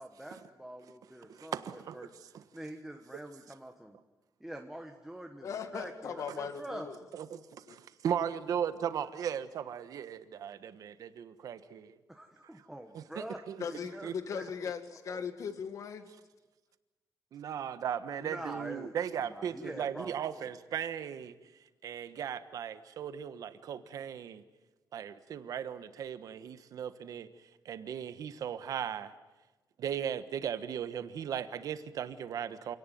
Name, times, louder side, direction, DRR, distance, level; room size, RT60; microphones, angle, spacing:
voice 1, 0.0-2.1 2.5-4.0 4.4-6.9 12.1-14.7 15.1-15.3 18.2-18.9 19.2-20.4, right 1 dB, 5° right, 3 dB, 1.3 m, -45 dB
voice 2, 1.3-2.1 2.3-2.4 7.1-12.0 12.9-13.6 14.0-14.1 17.3-21.3 21.8-24.4 24.9-27.3 27.6-29.1 29.8-32.8, right 8 dB, 60° right, 11 dB, 1.3 m, -37 dB
voice 3, 5.4-7.0 7.7-7.8 13.6-16.1, left 6 dB, 50° left, 9 dB, 2.0 m, -38 dB
27.5 x 18.0 x 9.3 m, 1.2 s
cardioid pair, 160°, 7 cm